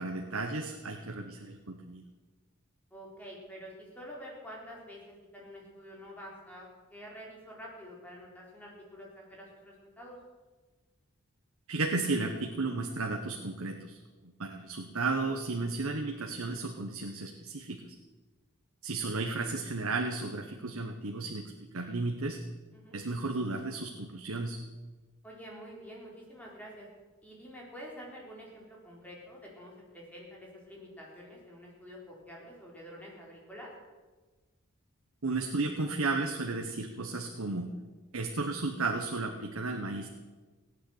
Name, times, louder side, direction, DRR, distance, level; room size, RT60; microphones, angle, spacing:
voice 1, 0.0-2.0 11.7-18.0 18.8-22.4 22.9-24.6 35.2-37.7 38.1-40.1, right 3 dB, 85° right, 3 dB, 1.2 m, -34 dB
voice 2, 2.9-10.2 22.7-23.0 25.2-26.9 27.2-33.7, equal, 5° left, -3 dB, 4.0 m, -48 dB
16.5 x 9.5 x 8.0 m, 1.3 s
head